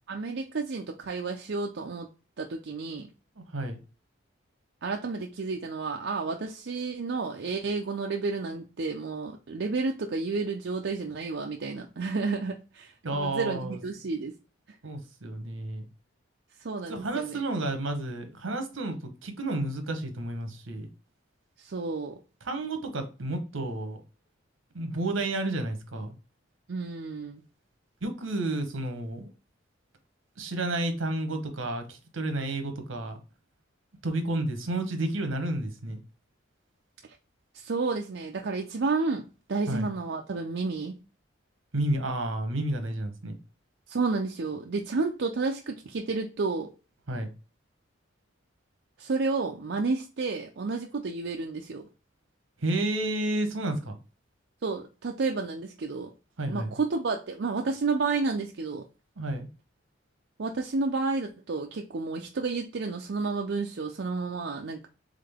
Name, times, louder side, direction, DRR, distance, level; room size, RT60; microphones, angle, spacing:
voice 1, 0.1-2.1 2.4-3.1 4.8-14.3 16.6-17.4 21.6-22.2 26.7-27.4 37.5-39.2 39.5-41.0 43.9-46.7 49.0-51.9 54.6-56.1 56.5-58.9 60.4-64.9, right 4 dB, 60° right, 2 dB, 0.5 m, -31 dB
voice 2, 3.4-3.8 13.0-13.8 14.8-15.9 16.9-20.9 22.4-24.0 24.7-26.1 28.0-29.3 30.4-33.2 34.0-36.0 39.7-39.9 41.7-43.3 47.1-47.3 52.6-54.0 56.4-56.7 59.2-59.5, right 2 dB, 75° right, 7 dB, 1.0 m, -31 dB
3.7 x 3.7 x 3.5 m, 0.33 s
head